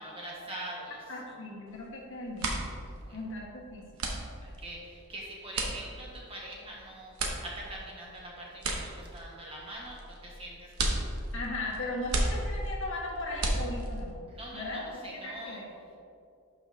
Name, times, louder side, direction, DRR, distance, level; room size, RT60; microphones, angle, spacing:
voice 1, 0.0-1.0 1.3-1.4 3.0-3.2 4.2-10.0 10.2-11.1 14.3-15.6, right 1 dB, 25° right, -4 dB, 1.5 m, -43 dB
voice 2, 1.1-2.6 3.1-3.8 11.3-14.1 14.5-15.7, left 2 dB, 60° left, -3 dB, 1.6 m, -37 dB
sound 1, 1.7-1.9 2.2-14.2, right 2 dB, 75° right, 1.0 m, -34 dB
11.5 x 5.5 x 2.8 m, 2.5 s
head